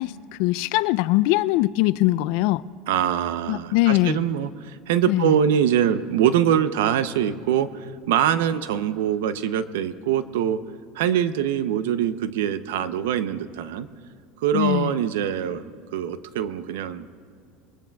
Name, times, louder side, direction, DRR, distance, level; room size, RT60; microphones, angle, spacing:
voice 1, 0.0-2.6 3.5-4.2 5.1-5.3 14.5-15.0, left 18 dB, 70° left, 18 dB, 0.3 m, -22 dB
voice 2, 2.9-10.6 10.9-13.9 14.4-15.6 15.9-17.1, right 9 dB, 85° right, 13 dB, 0.6 m, -23 dB
23.0 x 19.5 x 2.3 m, 2.3 s
supercardioid pair, 115°, 0 cm